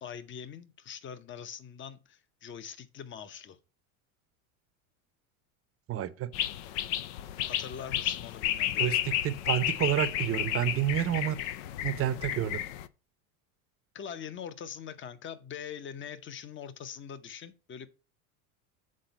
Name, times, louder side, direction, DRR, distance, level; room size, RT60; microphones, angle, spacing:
voice 1, 0.0-3.6 7.4-9.0 13.9-17.9, left 8 dB, 25° left, 0.8 m, -43 dB
voice 2, 5.9-6.3 8.8-9.0 9.2-11.4 11.8-12.7, right 12 dB, 30° right, 0.7 m, -29 dB
sound 1, 6.3-12.9, left 12 dB, 65° left, 0.7 m, -32 dB
7.7 x 4.0 x 5.2 m
supercardioid pair, 105°, 43 cm